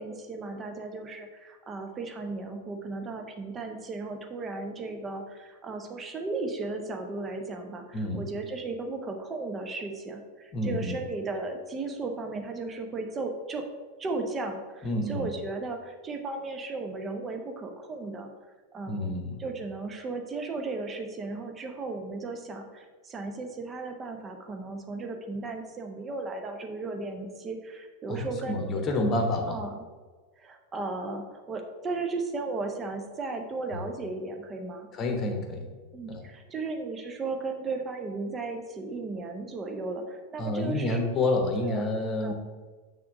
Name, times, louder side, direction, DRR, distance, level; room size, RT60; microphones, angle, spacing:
voice 1, 0.0-7.9 8.1-13.6 14.0-18.3 18.7-19.1 19.4-28.8 29.5-29.8 30.4-34.9 35.9-41.0 41.7-41.8 42.2-42.3, right 3 dB, 20° right, 4 dB, 0.8 m, -35 dB
voice 2, 7.9-8.3 10.5-11.0 14.8-15.3 18.9-19.4 28.1-29.6 33.7-33.8 34.9-35.7 36.1-36.3 40.4-42.3, left 2 dB, 30° left, 4 dB, 1.1 m, -29 dB
6.0 x 3.8 x 5.9 m, 1.4 s
figure-of-eight pair, 90°, 0 cm